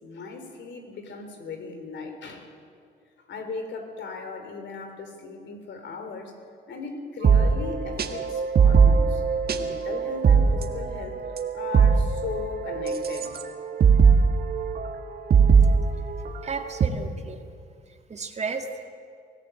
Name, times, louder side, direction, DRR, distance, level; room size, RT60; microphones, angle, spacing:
voice 1, 0.0-2.5 3.3-6.4 6.7-9.2 9.5-13.3, left 4 dB, 65° left, 6 dB, 3.6 m, -37 dB
sound 1, 7.2-16.9, right 6 dB, 50° right, 1.7 m, -21 dB
voice 2, 16.4-17.4 17.9-18.8, right 4 dB, 35° right, 5 dB, 2.0 m, -33 dB
24.5 x 15.5 x 7.8 m, 2.3 s
cardioid pair, 90°, 20 cm